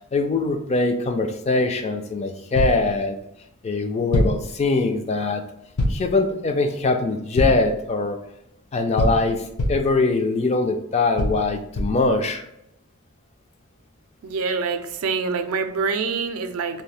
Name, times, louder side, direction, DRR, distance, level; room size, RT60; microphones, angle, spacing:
voice 1, 0.1-3.2 3.6-5.4 5.9-8.2 8.7-12.4, left 3 dB, 30° left, 5 dB, 0.3 m, -22 dB
sound 1, 2.5-2.9 4.1-4.5 5.8-6.1 7.4-7.7 9.0-9.9 11.2-12.1, left 1 dB, 90° left, 0.6 m, -23 dB
voice 2, 14.2-16.8, right 5 dB, 80° right, 7 dB, 0.4 m, -25 dB
2.7 x 2.4 x 3.2 m, 0.79 s
head